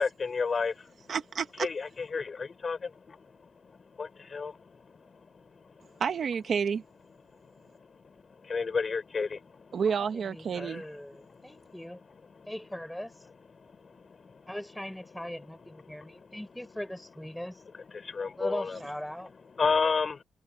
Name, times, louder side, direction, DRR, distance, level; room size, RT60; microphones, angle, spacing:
voice 1, 0.0-1.1 1.6-5.6 7.4-9.8 10.6-10.8 11.2-11.8 12.3-12.5 13.6-14.5 15.6-16.4 17.7-18.8 19.6-20.2, left 5 dB, 35° left, 5.9 m, -33 dB
voice 2, 1.1-1.7 6.0-6.8 9.7-10.8, right 6 dB, 55° right, 1.2 m, -29 dB
voice 3, 9.8-12.0 12.5-13.1 14.5-17.6 18.4-19.3, left 1 dB, 5° left, 4.6 m, -40 dB
wide cardioid pair, 145°, 0 cm